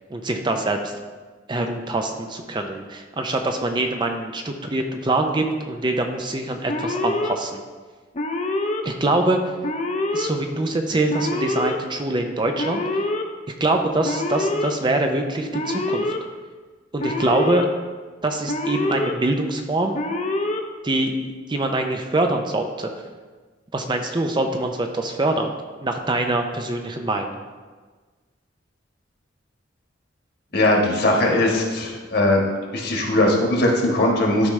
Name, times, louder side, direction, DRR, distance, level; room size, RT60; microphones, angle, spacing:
voice 1, 0.1-0.9 1.5-7.6 8.8-9.4 10.1-13.0 13.6-16.0 16.9-17.6 18.2-19.9 20.8-21.1 21.5-22.9 23.7-25.5 25.8-27.4, right 2 dB, 25° right, 4 dB, 0.5 m, -24 dB
Alarm, 6.7-7.3 8.1-8.8 9.6-10.3 11.1-11.8 12.6-13.2 14.0-14.7 15.5-16.2 17.0-17.7 18.5-19.1 19.9-20.6, left 2 dB, 35° left, 0.6 m, -25 dB
voice 2, 30.5-32.4 32.7-34.5, left 1 dB, 55° left, -1 dB, 1.5 m, -19 dB
12.0 x 4.9 x 3.2 m, 1.4 s
head